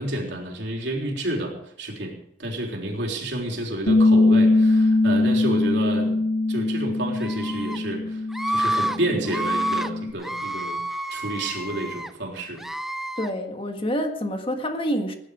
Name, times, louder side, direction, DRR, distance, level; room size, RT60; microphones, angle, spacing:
voice 1, 0.0-6.2 6.5-8.2 8.5-10.8 11.1-12.6, right 1 dB, 70° right, 0 dB, 3.7 m, -30 dB
Bass guitar, 3.9-10.1, left 2 dB, 65° left, 1.1 m, -21 dB
Screaming, 7.2-7.8 8.3-9.0 9.3-9.9 10.2-12.1 12.6-13.3, right 1 dB, ahead, 0.6 m, -28 dB
voice 2, 13.2-15.2, equal, 30° left, 4 dB, 1.7 m, -27 dB
19.0 x 11.0 x 5.0 m, 0.73 s
head